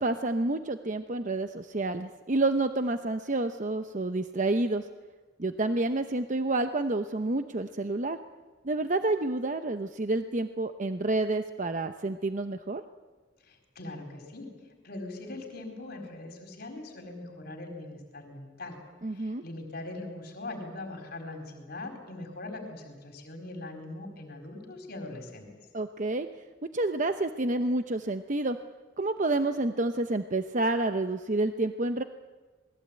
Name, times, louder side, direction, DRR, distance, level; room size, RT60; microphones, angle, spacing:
voice 1, 0.0-4.9 5.4-8.2 8.6-12.8 19.0-19.4 25.7-26.3 26.7-28.6 29.0-32.0, right 2 dB, 45° right, 8 dB, 0.8 m, -29 dB
voice 2, 13.4-14.5 14.8-18.8 19.1-25.5, left 2 dB, 55° left, 3 dB, 4.4 m, -41 dB
27.5 x 20.5 x 8.8 m, 1.4 s
head